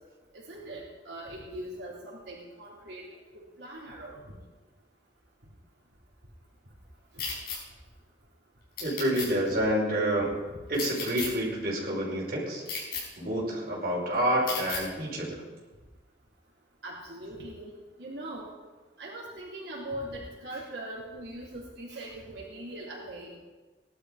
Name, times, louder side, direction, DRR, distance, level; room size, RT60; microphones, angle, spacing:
voice 1, 0.3-3.0 3.3-4.2 7.1-7.2 10.5-10.6 16.8-17.7 18.0-18.5 19.0-23.4, right 1 dB, 90° right, -6 dB, 3.6 m, -41 dB
sound 1, 7.2-7.6 8.8-9.3 10.7-11.3 12.7-13.0 14.5-14.8, left 5 dB, 55° left, 5.3 m, -34 dB
voice 2, 8.8-10.3 10.7-12.6 13.2-15.4, right 1 dB, 55° right, -4 dB, 5.2 m, -28 dB
18.5 x 11.5 x 4.9 m, 1.3 s
head